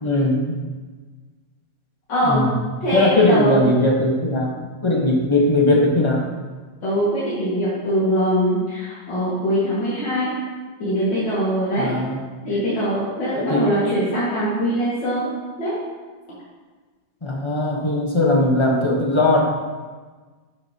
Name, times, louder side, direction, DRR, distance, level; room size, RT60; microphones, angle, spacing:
voice 1, 0.0-0.6 2.2-2.5 2.9-4.5 4.8-6.3 11.8-12.2 13.4-13.7 17.2-19.4, left 2 dB, 25° left, -1 dB, 0.7 m, -19 dB
voice 2, 2.1-2.4 2.8-3.6 6.8-10.3 10.8-11.9 12.4-15.3 15.6-15.7, equal, 75° left, -10 dB, 2.5 m, -22 dB
11.0 x 6.6 x 2.8 m, 1.4 s
omnidirectional pair, 2.0 m